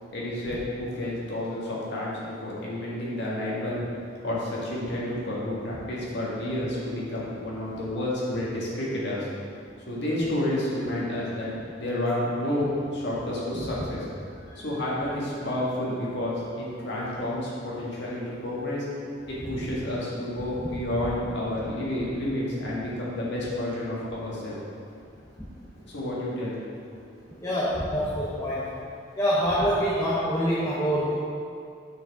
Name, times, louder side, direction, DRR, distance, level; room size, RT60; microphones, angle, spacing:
voice 1, 0.1-3.8 4.2-9.3 9.9-11.5 11.8-14.1 14.6-18.9 19.3-24.6 25.8-26.6, left 1 dB, 65° left, -6 dB, 1.7 m, -30 dB
voice 2, 27.4-28.7 29.2-31.1, equal, 15° left, -7 dB, 0.8 m, -25 dB
6.5 x 6.2 x 3.6 m, 2.4 s
head